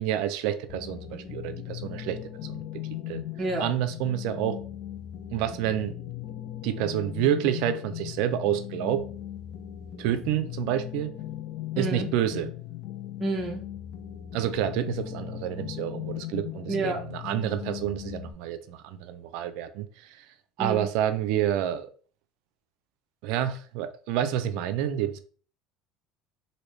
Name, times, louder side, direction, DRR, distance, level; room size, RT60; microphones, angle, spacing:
voice 1, 0.0-2.2 2.5-2.7 3.1-3.2 3.6-4.6 5.3-5.9 6.6-9.0 10.0-11.1 11.8-12.5 14.3-20.3 20.6-21.9 23.2-25.2, right 11 dB, 70° right, 0.4 m, -28 dB
sound 1, 0.7-18.3, left 12 dB, 65° left, 0.5 m, -38 dB
voice 2, 3.4-3.7 11.8-12.1 13.2-13.7 16.7-17.0 20.6-20.9, right 3 dB, 25° right, 0.7 m, -29 dB
3.1 x 2.7 x 3.0 m
supercardioid pair, 95°, 0 cm